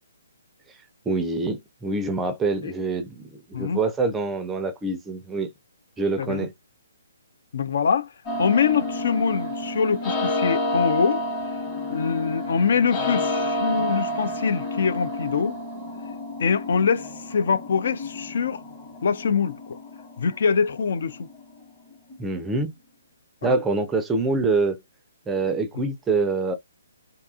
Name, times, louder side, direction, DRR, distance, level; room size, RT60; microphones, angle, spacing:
voice 1, 1.1-5.5 6.0-6.5 22.2-22.7 23.4-24.8 25.3-26.6, right 3 dB, 10° right, 0.4 m, -25 dB
voice 2, 7.5-8.1 8.4-11.2 11.9-15.6 16.4-18.6 19.0-19.8 20.2-21.3 23.4-23.6 25.8-25.9, left 6 dB, 55° left, 0.3 m, -24 dB
sound 1, 8.3-22.2, left 1 dB, 20° left, 1.0 m, -30 dB
2.7 x 2.3 x 2.4 m
figure-of-eight pair, 135°, 0 cm